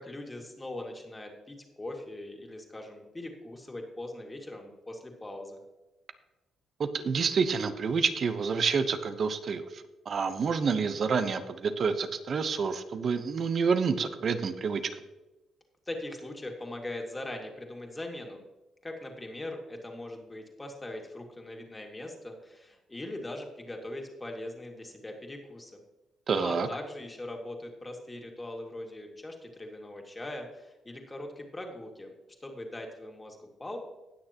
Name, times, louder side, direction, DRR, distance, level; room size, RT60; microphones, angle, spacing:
voice 1, 0.0-5.6 15.9-18.4 18.8-25.8 26.3-32.1 32.4-33.8, left 1 dB, 20° left, 2 dB, 2.2 m, -41 dB
voice 2, 6.8-9.6 10.1-14.8 26.3-26.7, right 5 dB, 50° right, 10 dB, 0.9 m, -28 dB
19.0 x 6.6 x 3.0 m, 1.1 s
cardioid pair, 90°, 0 cm